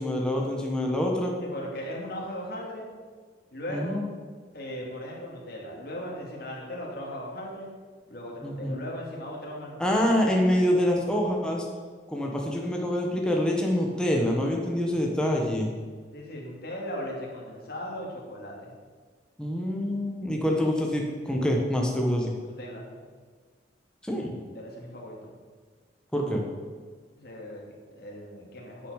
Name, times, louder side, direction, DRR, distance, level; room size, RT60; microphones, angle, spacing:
voice 1, 0.0-1.3 3.7-4.1 8.4-8.8 9.8-11.6 12.1-15.7 19.4-22.4 24.0-24.4 26.1-26.4, equal, 5° left, -1 dB, 1.3 m, -26 dB
voice 2, 1.4-2.9 3.5-4.0 4.5-7.7 8.1-10.2 16.1-18.7 22.4-23.0 24.5-25.3 27.2-28.9, equal, 60° left, -3 dB, 2.6 m, -38 dB
9.6 x 6.9 x 6.5 m, 1.5 s
head